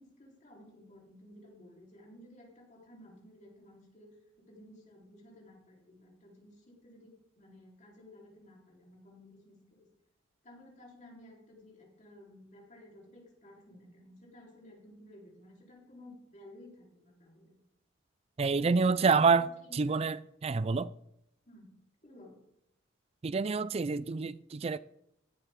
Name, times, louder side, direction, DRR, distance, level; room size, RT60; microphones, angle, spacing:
voice 1, 0.0-9.9 10.4-17.6 18.6-20.1 21.5-21.7 22.0-22.4, left 1 dB, 40° left, 3.7 m, -55 dB
voice 2, 18.4-20.9 23.2-24.8, right 4 dB, 30° right, 0.3 m, -28 dB
17.0 x 9.9 x 3.7 m
head